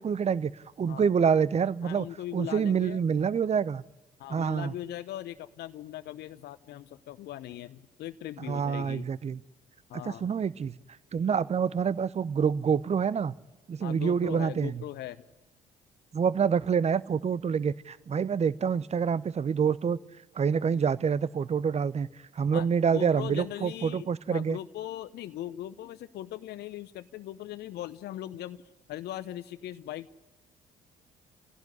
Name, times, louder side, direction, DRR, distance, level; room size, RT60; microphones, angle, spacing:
voice 1, 0.0-2.1 2.3-3.8 4.3-4.7 8.4-9.4 10.0-10.8 11.1-13.3 13.7-14.8 16.1-20.0 20.3-22.1 22.3-24.6, right 6 dB, 35° right, 0.8 m, -27 dB
voice 2, 1.8-3.0 4.2-9.1 9.9-10.3 13.8-15.2 22.5-22.7 22.9-28.6 28.9-30.2, left 13 dB, 55° left, 0.8 m, -39 dB
27.5 x 16.5 x 9.6 m
figure-of-eight pair, 50°, 20 cm